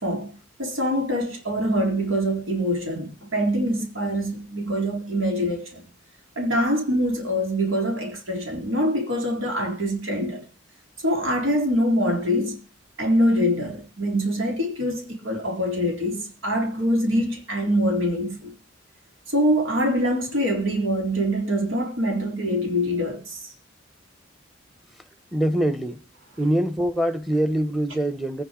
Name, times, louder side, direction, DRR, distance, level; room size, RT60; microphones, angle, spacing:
voice 1, 0.0-5.8 6.4-10.4 11.0-12.6 13.0-18.5 19.3-23.4, equal, 85° right, 3.9 m, -24 dB
voice 2, 25.3-26.0 26.4-28.4, right 1 dB, ahead, 0.9 m, -24 dB
23.0 x 9.3 x 3.8 m
head